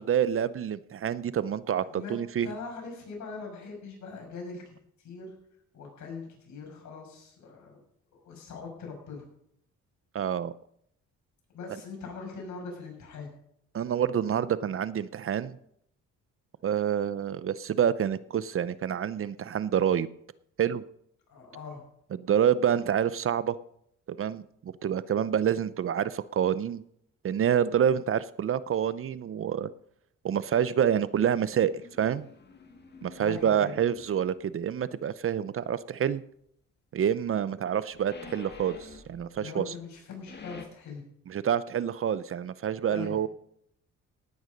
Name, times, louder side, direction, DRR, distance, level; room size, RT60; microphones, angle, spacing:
voice 1, 0.0-2.5 10.1-10.5 13.7-15.6 16.6-20.1 20.6-20.8 22.1-23.6 24.1-26.8 27.2-29.7 30.2-31.7 32.0-32.3 33.0-36.2 36.9-39.7 41.3-43.3, right 9 dB, 45° right, 17 dB, 0.6 m, -27 dB
voice 2, 1.8-4.6 5.0-5.3 5.7-7.8 8.2-9.2 11.5-13.3 21.3-21.8 33.2-33.8 39.4-41.0 42.9-43.2, left 4 dB, 70° left, 1 dB, 6.2 m, -41 dB
sound 1, 31.4-34.4 37.7-39.6 40.0-40.6, left 4 dB, 35° left, 2.1 m, -49 dB
17.5 x 9.5 x 5.3 m, 0.73 s
cardioid pair, 90°, 30 cm